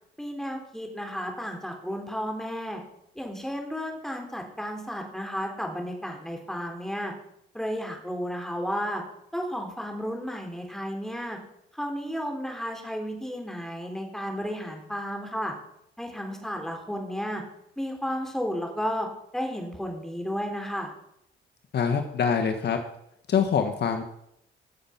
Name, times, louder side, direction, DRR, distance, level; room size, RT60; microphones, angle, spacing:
voice 1, 0.2-2.8 3.1-7.1 7.5-9.0 9.3-11.4 11.8-15.5 16.0-17.4 17.8-19.1 19.3-20.9, equal, ahead, 2 dB, 3.4 m, -33 dB
voice 2, 21.7-22.8 23.3-24.0, left 7 dB, 55° left, 6 dB, 1.4 m, -24 dB
15.0 x 6.8 x 5.8 m, 0.77 s
cardioid pair, 90°, 20 cm